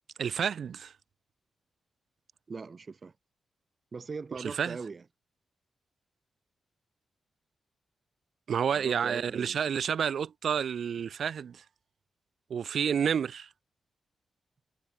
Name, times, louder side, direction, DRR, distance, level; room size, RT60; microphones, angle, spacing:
voice 1, 0.2-0.9 4.3-4.8 8.5-11.6 12.5-13.5, right 7 dB, 65° right, 1.8 m, -30 dB
voice 2, 2.5-3.1 3.9-5.0 8.7-9.6, right 4 dB, 35° right, 3.5 m, -40 dB
wide cardioid pair, 155°, 0 cm